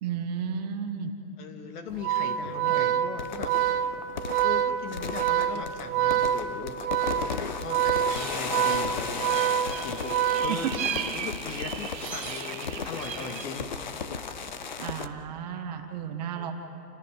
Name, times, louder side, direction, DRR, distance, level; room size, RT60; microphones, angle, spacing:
voice 1, 0.0-1.1 2.7-3.0 10.5-10.7 14.8-16.5, right 8 dB, 25° right, 5 dB, 1.0 m, -33 dB
voice 2, 1.4-3.9 4.4-9.3 9.6-10.8 11.1-13.7 16.3-16.5, left 5 dB, 65° left, 6 dB, 2.5 m, -39 dB
Organ, 1.9-11.1, right 10 dB, 60° right, 1.6 m, -26 dB
sound 1, 3.2-15.1, left 5 dB, 30° left, 0.4 m, -36 dB
sound 2, 8.1-13.4, right 9 dB, 85° right, 2.0 m, -37 dB
29.0 x 24.5 x 5.2 m, 2.9 s
hypercardioid pair, 175°, 49 cm